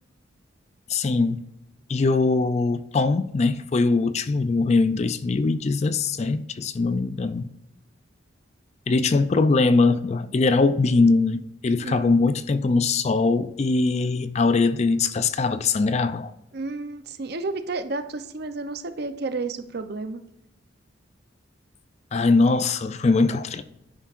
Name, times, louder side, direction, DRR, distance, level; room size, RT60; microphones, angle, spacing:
voice 1, 0.9-1.4 1.9-7.5 8.9-16.3 22.1-23.6, left 3 dB, 35° left, 0.4 m, -21 dB
voice 2, 11.8-12.2 16.5-20.2, right 3 dB, 55° right, 0.7 m, -31 dB
10.5 x 9.2 x 2.5 m
head